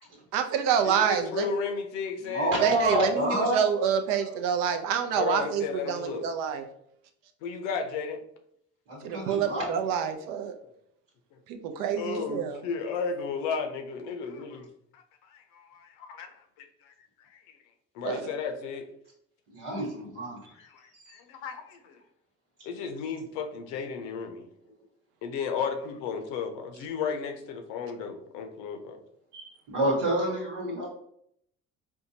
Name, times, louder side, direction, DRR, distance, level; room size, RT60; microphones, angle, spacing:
voice 1, 0.3-1.5 2.6-6.6 9.0-10.6 11.5-12.6 18.0-18.2, right 8 dB, 65° right, 7 dB, 0.6 m, -27 dB
voice 2, 0.8-2.5 5.1-6.2 7.4-8.2 10.3-10.4 12.0-14.7 14.9-15.0 15.3-16.9 17.2-17.6 17.9-18.8 20.7-22.0 22.6-24.5 25.2-29.0, left 6 dB, 80° left, 5 dB, 0.6 m, -34 dB
voice 3, 2.2-3.6 8.9-9.7 19.5-20.4 20.9-21.2 29.3-30.9, right 1 dB, 80° right, -4 dB, 1.3 m, -28 dB
4.4 x 2.2 x 2.7 m, 0.71 s
hypercardioid pair, 55°, 35 cm